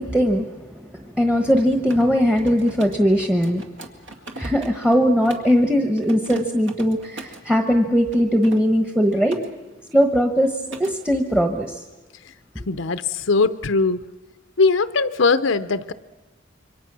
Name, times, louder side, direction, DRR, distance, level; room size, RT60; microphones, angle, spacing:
voice 1, 0.0-3.7 4.4-9.4 9.9-11.8 12.5-12.6, equal, 5° right, 5 dB, 1.1 m, -20 dB
Mechanisms, 1.5-5.6 6.0-7.5 8.1-9.5 9.8-10.1 10.4-11.0, right 2 dB, 65° right, 2.3 m, -38 dB
voice 2, 12.7-14.1 14.6-15.9, left 4 dB, 75° left, 12 dB, 0.8 m, -20 dB
27.0 x 24.0 x 6.2 m, 1.3 s
head